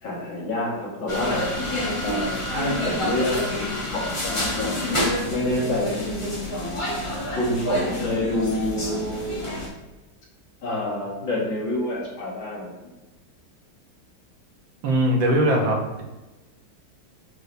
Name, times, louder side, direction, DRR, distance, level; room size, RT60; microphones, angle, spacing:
voice 1, 0.0-1.5 2.0-4.9 5.3-6.3 7.4-9.2 10.6-12.9, left 1 dB, 70° left, -5 dB, 2.6 m, -28 dB
sound 1, 1.1-9.7, left 1 dB, 20° left, 0.8 m, -28 dB
voice 2, 14.8-16.0, right 1 dB, 70° right, -1 dB, 1.9 m, -21 dB
7.9 x 6.1 x 2.7 m, 1.1 s
omnidirectional pair, 2.2 m